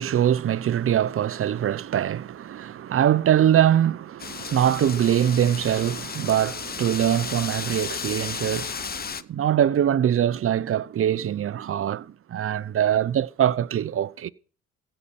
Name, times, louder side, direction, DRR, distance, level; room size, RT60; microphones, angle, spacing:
voice 1, 0.0-14.3, right 10 dB, 45° right, 0.7 m, -23 dB
Wind, 4.2-9.2, left 6 dB, 30° left, 0.8 m, -34 dB
16.0 x 5.6 x 9.1 m
supercardioid pair, 75°, 32 cm